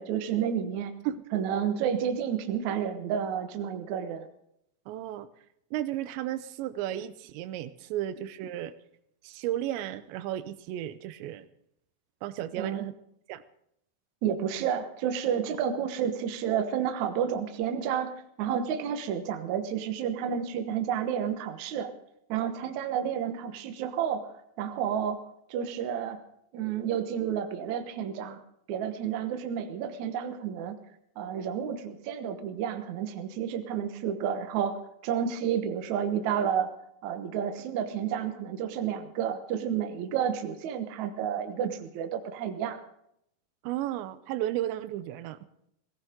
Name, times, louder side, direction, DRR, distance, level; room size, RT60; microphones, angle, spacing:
voice 1, 0.0-0.9 1.3-4.3 12.6-12.9 14.2-21.9 22.3-24.3 24.6-25.2 25.5-26.2 26.5-28.4 28.7-30.8 31.2-36.7 37.0-42.8, right 8 dB, 65° right, 7 dB, 1.9 m, -30 dB
voice 2, 4.9-5.3 5.7-8.7 9.2-11.5 12.2-12.9 13.3-13.4 43.6-45.4, right 12 dB, 90° right, 13 dB, 3.1 m, -34 dB
18.0 x 17.0 x 3.7 m, 0.75 s
omnidirectional pair, 5.0 m